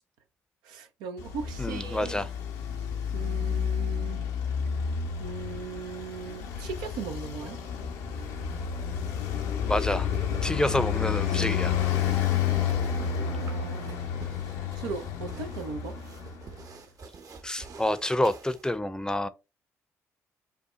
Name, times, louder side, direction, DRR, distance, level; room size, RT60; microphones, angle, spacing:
voice 1, 0.6-2.3 3.1-4.2 5.2-7.6 13.0-14.1 14.7-16.0, right 5 dB, 75° right, 0.5 m, -38 dB
Traffic noise roadway noise, 1.2-16.7, left 8 dB, 80° left, 0.8 m, -30 dB
voice 2, 1.6-2.3 9.7-10.1 10.4-11.7 17.4-19.3, left 1 dB, 10° left, 0.6 m, -28 dB
sound 1, 9.7-18.8, right 4 dB, 50° right, 0.9 m, -48 dB
5.6 x 2.2 x 3.0 m
hypercardioid pair, 50°, 8 cm